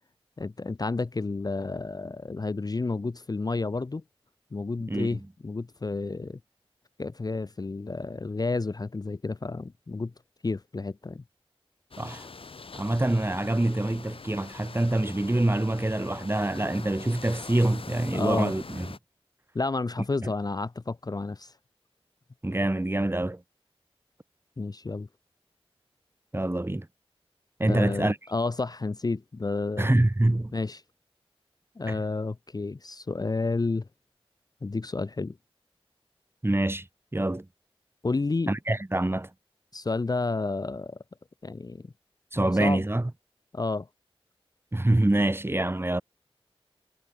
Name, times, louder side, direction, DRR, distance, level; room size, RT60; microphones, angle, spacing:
voice 1, 0.4-4.0 4.5-6.4 7.0-10.1 10.4-11.2 18.1-18.5 19.5-21.5 24.6-25.1 27.6-29.9 30.5-30.8 31.8-33.9 34.6-35.4 38.0-38.5 39.7-41.0 41.4-41.9 42.4-42.8 43.5-43.9, left 3 dB, 40° left, 0.6 m, -30 dB
voice 2, 4.9-5.2 12.0-12.3 12.8-18.9 20.2-20.3 22.4-23.4 26.3-26.9 27.6-28.2 29.8-30.5 31.9-32.0 36.4-36.9 37.1-37.5 38.5-39.3 42.3-43.1 44.7-46.0, right 1 dB, 25° right, 1.5 m, -25 dB
sound 1, 11.9-19.0, left 4 dB, 65° left, 0.9 m, -43 dB
wide cardioid pair, 55°, 10 cm